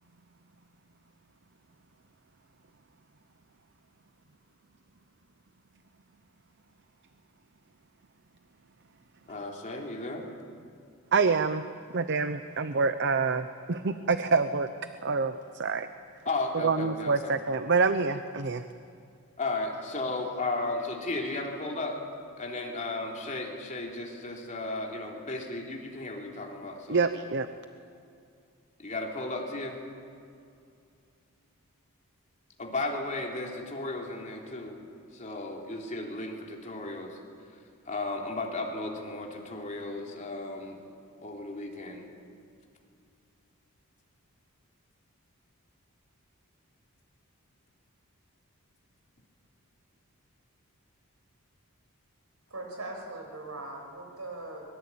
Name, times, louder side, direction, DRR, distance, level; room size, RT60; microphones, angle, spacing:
voice 1, 9.3-10.2 16.3-17.2 19.4-22.0 22.4-27.1 28.8-29.8 32.6-34.8 35.1-37.2 37.9-40.8 41.2-42.1, left 2 dB, 35° left, 0 dB, 3.4 m, -34 dB
voice 2, 11.1-11.6 11.9-14.7 15.0-15.9 16.5-18.6 26.9-27.5, right 4 dB, 50° right, 10 dB, 0.8 m, -26 dB
voice 3, 52.5-54.6, right 2 dB, 75° right, 2 dB, 6.4 m, -40 dB
23.5 x 22.5 x 8.7 m, 2.4 s
head